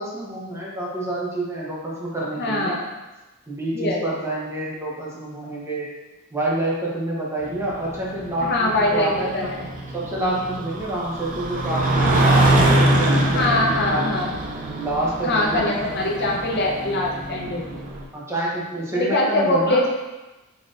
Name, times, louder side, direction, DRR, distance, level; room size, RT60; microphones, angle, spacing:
voice 1, 0.0-2.8 3.5-5.9 6.3-9.5 9.9-14.2 14.7-15.7 18.1-19.9, right 1 dB, 15° right, -5 dB, 0.8 m, -28 dB
voice 2, 2.4-2.9 3.7-4.0 8.4-9.7 13.3-14.4 15.2-17.6 18.9-19.9, left 1 dB, 50° left, -1 dB, 0.6 m, -22 dB
sound 1, 7.4-18.0, right 1 dB, 40° right, 0.4 m, -23 dB
4.0 x 3.3 x 2.5 m, 1.1 s
head